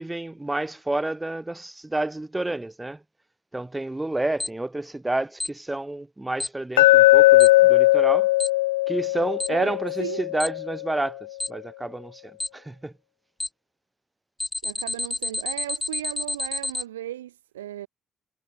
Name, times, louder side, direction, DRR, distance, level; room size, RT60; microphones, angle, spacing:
voice 1, 0.0-3.0 3.5-8.3 8.9-12.2 12.5-12.9, right 2 dB, 15° right, 5.3 m, -29 dB
Alarm, 4.4-4.5 5.4-5.5 6.4-6.5 7.4-7.5 8.4-8.5 9.4-9.5 10.4-10.5 11.4-11.5 12.4-12.5 13.4-13.5 14.4-16.8, left 2 dB, 15° left, 6.6 m, -28 dB
Glass, 6.8-10.9, left 18 dB, 80° left, 0.9 m, -18 dB
voice 2, 9.5-10.2 14.6-17.9, right 13 dB, 85° right, 1.9 m, -36 dB
figure-of-eight pair, 45°, 0 cm